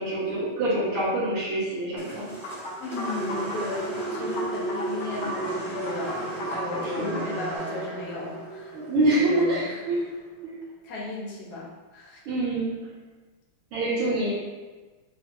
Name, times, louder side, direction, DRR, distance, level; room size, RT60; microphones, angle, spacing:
voice 1, 0.0-2.2 6.8-7.2 8.7-10.0 10.4-10.6 12.3-12.7 13.7-14.3, right 1 dB, 75° right, -9 dB, 2.4 m, -26 dB
sound 1, 2.0-10.2, right 2 dB, 10° left, 1.0 m, -34 dB
sound 2, 2.4-7.6, equal, 85° left, 0.7 m, -36 dB
voice 2, 2.8-8.8 9.1-9.8 10.8-12.2 13.8-14.0, left 3 dB, 60° left, -4 dB, 1.1 m, -35 dB
4.4 x 2.7 x 2.7 m, 1.3 s
omnidirectional pair, 2.4 m